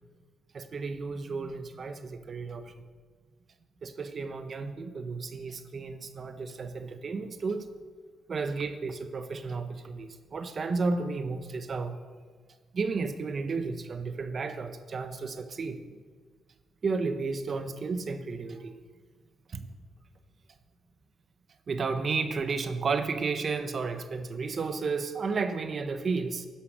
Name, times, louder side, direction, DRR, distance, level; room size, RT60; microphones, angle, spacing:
voice 1, 0.5-2.7 3.8-7.7 8.3-11.9 12.7-15.8 16.8-18.7 19.5-19.6 21.7-26.5, right 4 dB, 45° right, 9 dB, 1.0 m, -32 dB
11.5 x 10.0 x 6.4 m, 1.5 s
cardioid pair, 90°, 0 cm